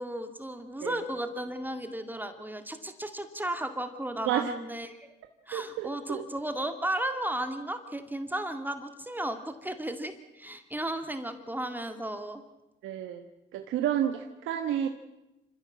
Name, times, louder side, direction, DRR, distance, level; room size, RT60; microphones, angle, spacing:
voice 1, 0.0-5.1 5.5-12.4, right 1 dB, 10° right, 7 dB, 2.1 m, -34 dB
voice 2, 5.5-6.2 12.8-13.2 13.5-14.9, right 10 dB, 90° right, 5 dB, 1.3 m, -30 dB
27.0 x 15.5 x 7.5 m, 0.98 s
cardioid pair, 90°, 20 cm